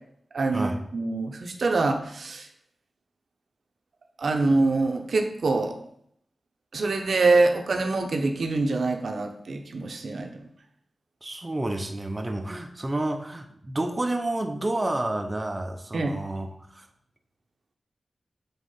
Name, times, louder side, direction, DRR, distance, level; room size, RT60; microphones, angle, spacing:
voice 1, 0.3-2.5 4.2-5.8 6.7-10.3 15.9-16.1, right 3 dB, 65° right, 4 dB, 0.9 m, -25 dB
voice 2, 11.2-16.9, right 1 dB, 20° right, 3 dB, 0.7 m, -30 dB
7.2 x 3.6 x 5.6 m, 0.69 s
wide cardioid pair, 115°, 0 cm